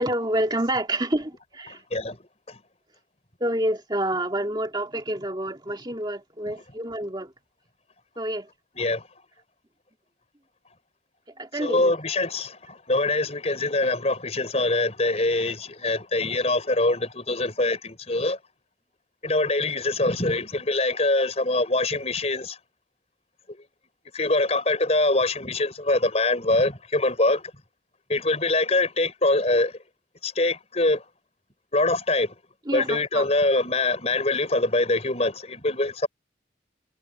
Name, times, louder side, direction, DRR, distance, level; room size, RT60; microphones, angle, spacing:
voice 1, 0.0-1.8 3.4-7.3 8.2-8.5 11.4-11.9 32.6-33.3, right 1 dB, 25° right, 2.2 m, -28 dB
voice 2, 11.6-18.4 19.2-22.6 24.1-27.4 28.1-29.7 30.2-31.0 31.7-32.3 32.7-36.1, left 2 dB, 35° left, 4.3 m, -24 dB
head